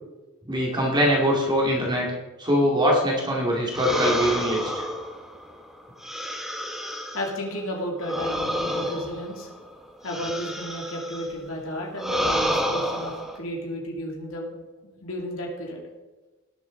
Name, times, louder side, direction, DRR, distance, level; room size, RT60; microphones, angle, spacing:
voice 1, 0.4-2.1 2.4-4.8, equal, 20° right, -2 dB, 2.4 m, -22 dB
sound 1, 3.7-7.4 8.0-11.3 11.9-13.4, equal, ahead, 1.1 m, -29 dB
voice 2, 7.1-9.5 10.0-14.5 15.0-15.8, equal, 65° left, -1 dB, 2.7 m, -32 dB
17.5 x 7.1 x 3.9 m, 1.2 s
head